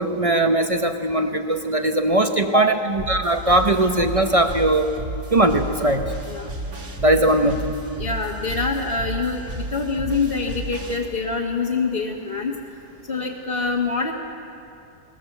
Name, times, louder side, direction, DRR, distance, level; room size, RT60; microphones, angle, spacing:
voice 1, 0.0-4.9 5.3-6.1 7.0-7.7, right 1 dB, 40° right, 6 dB, 0.5 m, -20 dB
sound 1, 3.0-11.0, right 1 dB, 60° right, 3.2 m, -33 dB
voice 2, 8.0-12.6 13.1-14.1, left 4 dB, 35° left, -3 dB, 1.5 m, -25 dB
21.0 x 18.5 x 7.9 m, 2.6 s
omnidirectional pair, 1.9 m